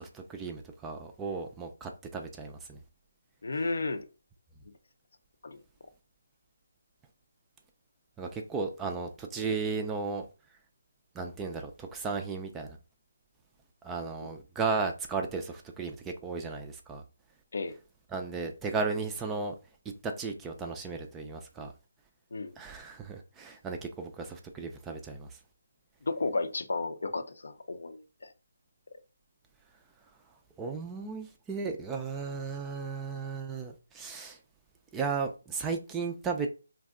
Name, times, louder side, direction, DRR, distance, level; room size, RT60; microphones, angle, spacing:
voice 1, 0.0-2.8 8.2-10.3 11.1-12.8 13.8-17.0 18.1-19.6 20.0-21.7 22.6-25.4 30.6-34.4 34.9-36.5, right 4 dB, 10° right, 0.3 m, -35 dB
voice 2, 3.4-4.0 5.4-5.6 17.5-17.7 22.3-22.6 26.1-28.3, left 3 dB, 65° left, 0.5 m, -33 dB
2.6 x 2.1 x 3.6 m
figure-of-eight pair, 155°, 0 cm